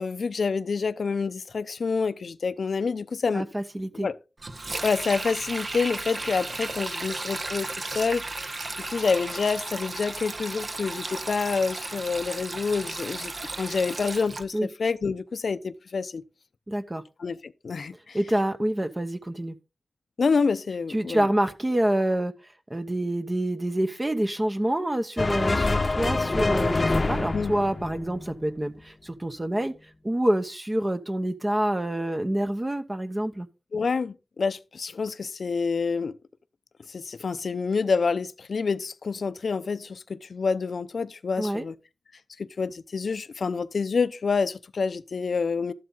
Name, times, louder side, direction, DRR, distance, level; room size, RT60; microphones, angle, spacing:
voice 1, 0.0-3.5 3.9-4.1 4.8-8.2 8.9-13.3 13.6-16.2 17.2-18.2 20.2-21.3 27.3-27.5 33.7-36.1 36.9-41.7 42.4-45.7, left 5 dB, 85° left, 0.6 m, -27 dB
voice 2, 3.3-4.1 14.5-14.7 16.7-17.0 18.1-19.6 20.9-22.3 22.7-33.5 41.4-41.7, right 1 dB, 25° right, 1.0 m, -27 dB
Sink (filling or washing), 4.4-14.4, right 2 dB, 55° right, 1.3 m, -34 dB
sound 1, 25.2-28.7, left 3 dB, 40° left, 0.8 m, -26 dB
13.0 x 7.7 x 3.9 m
wide cardioid pair, 65°, 0 cm